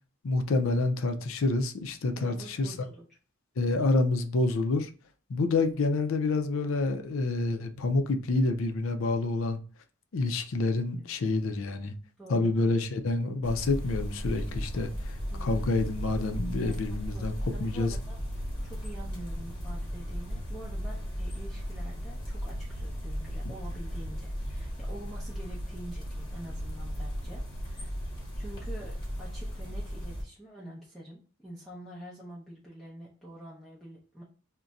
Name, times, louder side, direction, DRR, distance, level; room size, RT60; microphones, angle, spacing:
voice 1, 0.2-2.7 3.6-4.9 5.3-9.6 10.1-11.9 12.3-17.3 17.6-18.0, left 2 dB, 65° left, 0.5 m, -28 dB
voice 2, 2.2-3.0 12.2-12.8 15.3-15.7 16.6-27.9 28.4-34.2, right 1 dB, ahead, 0.5 m, -46 dB
sound 1, 13.4-30.2, equal, 20° left, 1.1 m, -36 dB
2.5 x 2.2 x 4.0 m
head